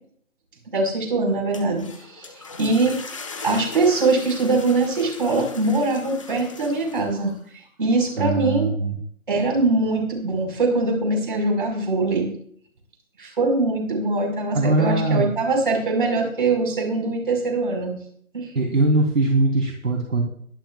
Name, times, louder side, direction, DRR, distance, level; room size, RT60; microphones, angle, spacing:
voice 1, 0.7-2.3 2.6-3.0 3.4-7.3 7.8-8.7 9.3-12.3 13.2-18.0 18.3-18.5, right 3 dB, 35° right, 1 dB, 5.3 m, -22 dB
sound 1, 1.3-7.4, left 4 dB, 20° left, 1.4 m, -39 dB
voice 2, 8.2-9.0 14.5-15.3 18.5-20.2, right 2 dB, 65° right, 1 dB, 3.8 m, -21 dB
22.5 x 12.0 x 2.5 m, 0.62 s
figure-of-eight pair, 170°, 42 cm